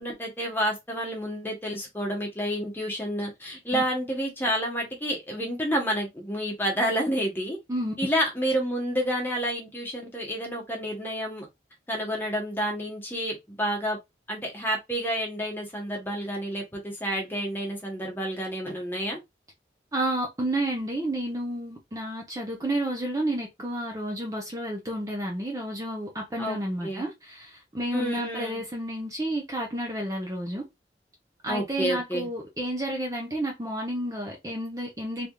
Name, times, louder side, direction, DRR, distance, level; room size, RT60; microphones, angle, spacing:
voice 1, 0.0-7.6 8.0-11.5 11.9-14.0 14.3-19.2 26.4-26.6 26.8-27.1 27.9-28.6 31.5-32.3, equal, 10° left, 1.1 m, -29 dB
voice 2, 19.9-30.6 31.4-35.3, right 1 dB, 20° right, 0.7 m, -31 dB
3.4 x 3.4 x 2.3 m
head